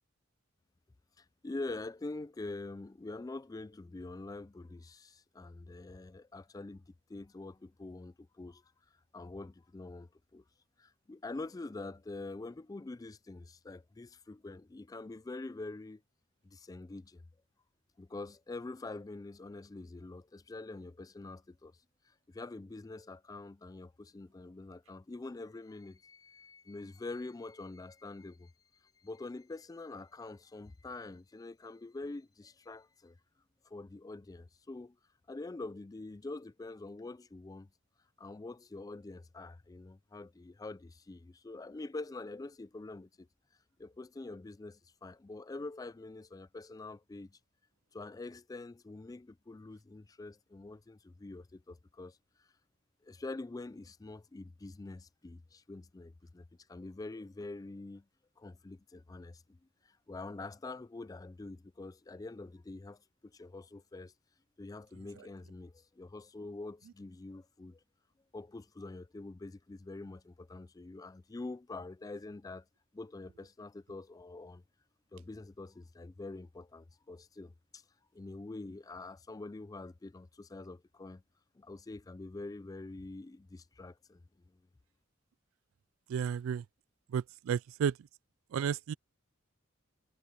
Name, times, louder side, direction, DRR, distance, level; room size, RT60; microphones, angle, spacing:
voice 1, 1.2-8.6 9.1-10.4 10.8-16.0 16.4-17.2 18.0-21.8 22.1-28.5 29.0-33.2 33.6-35.0 35.3-37.7 38.2-43.3 43.8-47.4 47.9-52.5 53.0-58.1 58.4-59.6 59.8-64.1 64.6-67.8 68.3-72.7 72.9-74.6 75.1-77.8 78.1-81.2 81.5-84.6, left 2 dB, 20° left, 0.4 m, -45 dB
voice 2, 86.1-86.6 87.1-88.0 88.5-88.9, right 7 dB, 90° right, 0.3 m, -32 dB
head